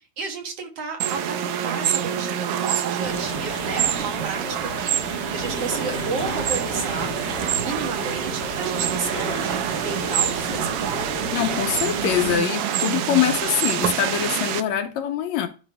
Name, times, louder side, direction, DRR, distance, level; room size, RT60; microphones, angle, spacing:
voice 1, 0.2-7.1 7.4-11.1, right 4 dB, 60° right, 2.2 m, -32 dB
sound 1, 1.0-14.6, right 10 dB, 85° right, 1.3 m, -27 dB
sound 2, 3.0-12.3, right 1 dB, 35° right, 1.0 m, -32 dB
voice 2, 11.3-15.5, left 10 dB, 75° left, 1.9 m, -24 dB
11.5 x 4.2 x 3.4 m
omnidirectional pair, 3.4 m